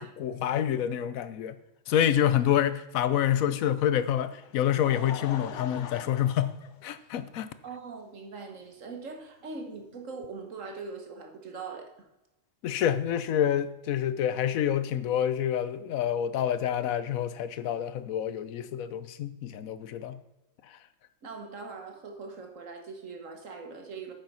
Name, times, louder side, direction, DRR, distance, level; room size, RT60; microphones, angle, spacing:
voice 1, 0.0-1.6 1.9-6.5 6.8-7.5 12.6-20.2, left 10 dB, 85° left, 13 dB, 1.1 m, -27 dB
Laughter, 4.1-7.4 8.2-8.3 9.7-9.8, left 7 dB, 65° left, 1.0 m, -42 dB
voice 2, 7.6-12.1 21.2-24.1, right 4 dB, 70° right, 3 dB, 1.7 m, -41 dB
9.1 x 7.0 x 5.5 m, 0.93 s
omnidirectional pair, 1.4 m